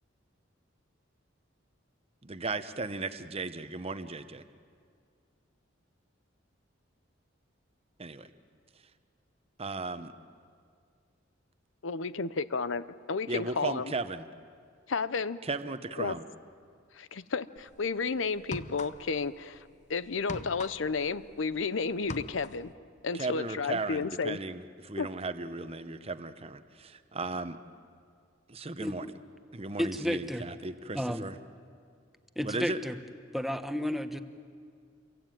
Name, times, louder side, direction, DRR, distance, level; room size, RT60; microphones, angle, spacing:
voice 1, 2.2-4.4 8.0-8.3 9.6-10.1 13.3-14.2 15.4-16.2 23.1-27.6 28.5-29.1 29.5-31.4 32.4-32.8, right 3 dB, 30° right, 10 dB, 0.9 m, -36 dB
voice 2, 11.8-13.9 14.9-15.4 16.0-16.2 16.9-22.7 23.0-24.4 25.0-25.1, left 4 dB, 80° left, 15 dB, 0.7 m, -32 dB
sound 1, 17.6-17.8 18.4-19.3 19.5-21.7 21.9-22.7, left 3 dB, 40° left, 0.9 m, -41 dB
voice 3, 29.8-30.4 30.9-31.3 32.4-32.9 33.3-34.2, equal, ahead, 9 dB, 1.0 m, -31 dB
28.0 x 23.0 x 9.1 m, 2.2 s
head